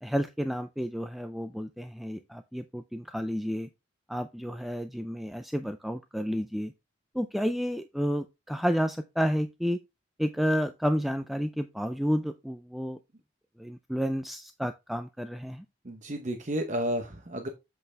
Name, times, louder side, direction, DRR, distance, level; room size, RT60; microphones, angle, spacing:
voice 1, 0.0-3.7 4.1-6.7 7.1-9.8 10.2-13.0 13.6-15.6, equal, ahead, 0.3 m, -31 dB
voice 2, 15.8-17.5, equal, 40° right, 0.9 m, -32 dB
7.7 x 6.0 x 3.3 m
head